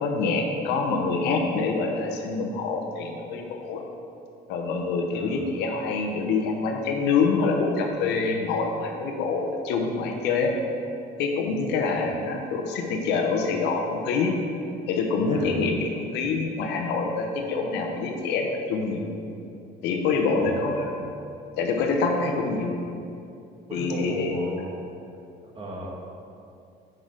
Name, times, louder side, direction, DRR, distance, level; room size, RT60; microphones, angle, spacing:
voice 1, 0.0-3.8 4.5-10.5 11.2-14.3 14.9-19.1 19.8-20.9 21.6-22.8 23.7-24.3, left 4 dB, 85° left, 2 dB, 0.9 m, -26 dB
voice 2, 5.0-5.4 12.0-12.1 15.2-15.7 20.3-20.7 23.7-25.0 25.4-25.9, right 1 dB, 30° right, -4 dB, 1.8 m, -36 dB
7.8 x 6.4 x 3.8 m, 2.6 s
cardioid pair, 110°, 17 cm